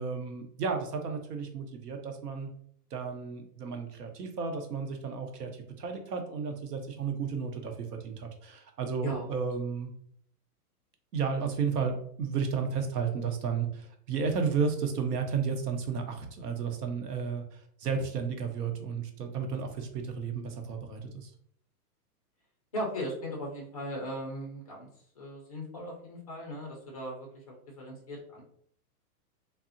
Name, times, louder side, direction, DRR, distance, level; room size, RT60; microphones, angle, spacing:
voice 1, 0.0-2.5 2.9-9.9 11.1-21.3, right 5 dB, 75° right, 5 dB, 0.8 m, -33 dB
voice 2, 22.7-24.9 25.2-28.4, equal, 25° left, -1 dB, 0.3 m, -38 dB
3.5 x 2.0 x 2.5 m, 0.64 s
hypercardioid pair, 150°, 48 cm